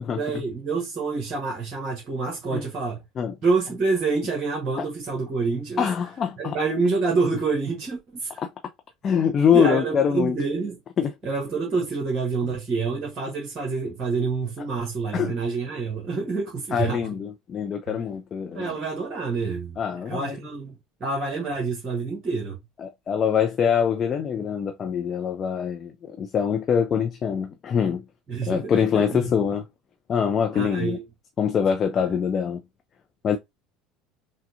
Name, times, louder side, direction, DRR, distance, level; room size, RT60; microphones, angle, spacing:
voice 1, 0.1-3.0 3.4-5.9 6.4-8.3 9.5-10.8 11.2-17.0 18.5-19.8 20.0-22.6 28.3-29.3 30.5-31.0, right 4 dB, 35° right, 1.4 m, -27 dB
voice 2, 5.8-6.6 8.4-8.5 9.0-10.4 11.0-11.1 15.1-15.4 16.7-18.7 19.8-20.4 22.8-28.0 28.5-29.6 30.1-31.0 31.4-32.6 33.2-33.4, left 7 dB, 35° left, 0.5 m, -24 dB
5.9 x 2.3 x 2.7 m
figure-of-eight pair, 65°, 0 cm